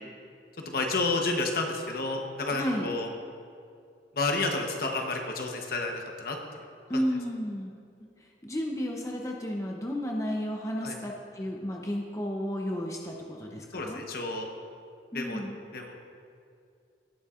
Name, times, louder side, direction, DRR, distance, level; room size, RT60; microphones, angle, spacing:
voice 1, 0.6-3.1 4.1-6.4 6.9-7.0 10.8-11.0 13.7-14.5 15.1-15.4 15.7-16.0, left 3 dB, 55° left, 2 dB, 1.0 m, -30 dB
voice 2, 2.5-2.9 6.9-7.7 8.4-14.0 15.1-15.6, equal, 15° left, 0 dB, 0.7 m, -32 dB
18.0 x 7.0 x 2.5 m, 2.4 s
head